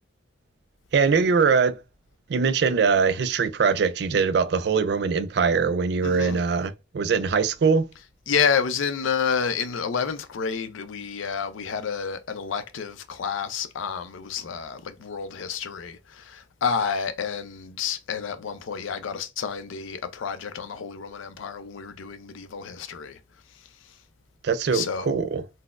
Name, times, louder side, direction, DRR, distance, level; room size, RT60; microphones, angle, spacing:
voice 1, 0.9-1.8 2.3-7.9 24.4-25.4, right 5 dB, 60° right, 0.3 m, -22 dB
voice 2, 6.0-6.5 8.3-23.2 24.7-25.1, left 6 dB, 90° left, 0.5 m, -29 dB
4.0 x 2.0 x 2.4 m
head